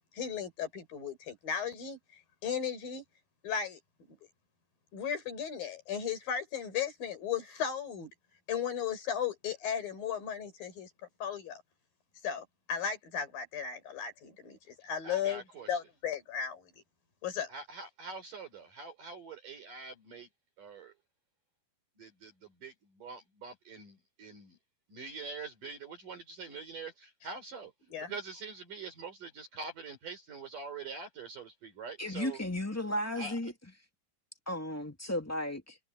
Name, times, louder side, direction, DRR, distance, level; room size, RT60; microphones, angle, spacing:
voice 1, 0.1-3.0 3.4-3.8 4.1-4.2 4.9-8.1 8.5-10.9 11.2-11.6 12.2-16.7 17.2-17.5 27.9-28.2, left 8 dB, 65° left, 7.2 m, -36 dB
voice 2, 15.0-15.8 17.5-20.3 20.6-20.9 22.0-24.6 24.9-27.7 28.1-32.4 33.2-33.4, right 4 dB, 55° right, 6.3 m, -44 dB
voice 3, 32.0-33.5 34.4-35.8, left 1 dB, 5° left, 1.2 m, -34 dB
omnidirectional pair, 4.5 m